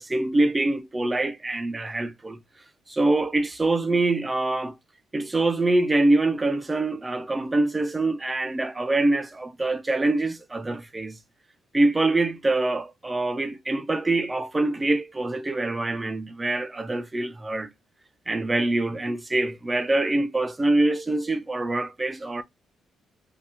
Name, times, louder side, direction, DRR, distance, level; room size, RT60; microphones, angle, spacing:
voice 1, 0.0-2.4 2.9-4.8 5.1-11.2 11.7-17.7 18.3-22.4, right 2 dB, 20° right, 0.5 m, -24 dB
2.8 x 2.4 x 3.4 m
cardioid pair, 90°, 0 cm